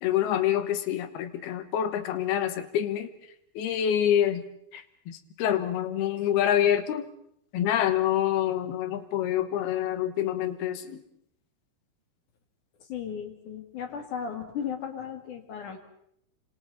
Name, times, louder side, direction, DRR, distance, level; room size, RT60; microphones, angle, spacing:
voice 1, 0.0-3.1 3.6-4.5 4.7-7.1 7.5-11.0, left 10 dB, 75° left, 10 dB, 3.1 m, -26 dB
voice 2, 12.9-15.8, left 7 dB, 55° left, 5 dB, 3.3 m, -35 dB
28.0 x 26.0 x 4.1 m, 0.72 s
omnidirectional pair, 4.7 m